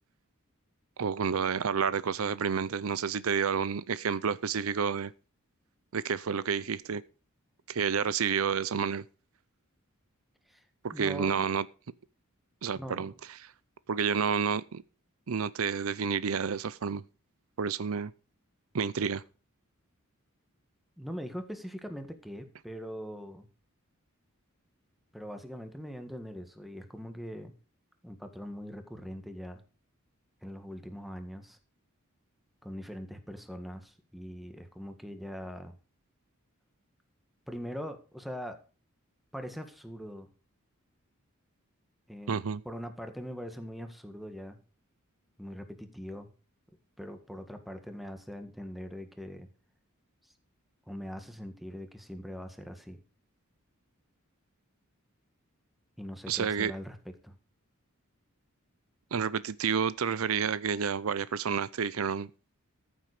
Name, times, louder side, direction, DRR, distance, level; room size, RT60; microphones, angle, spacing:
voice 1, 1.0-5.1 5.9-7.0 7.7-9.0 10.8-11.7 12.6-13.1 13.4-13.5 13.9-14.8 15.3-17.0 17.6-18.1 18.7-19.2 42.3-42.6 56.3-56.7 59.1-62.3, right 6 dB, 75° right, 0.6 m, -30 dB
voice 2, 10.9-11.4 12.7-13.2 21.0-23.5 25.1-27.5 28.0-29.6 30.4-31.6 32.6-35.7 37.5-38.6 39.3-40.3 42.1-44.6 45.4-46.3 47.0-49.5 50.9-53.0 56.0-57.0 57.2-57.3, equal, ahead, 1.7 m, -42 dB
14.0 x 7.4 x 5.0 m
head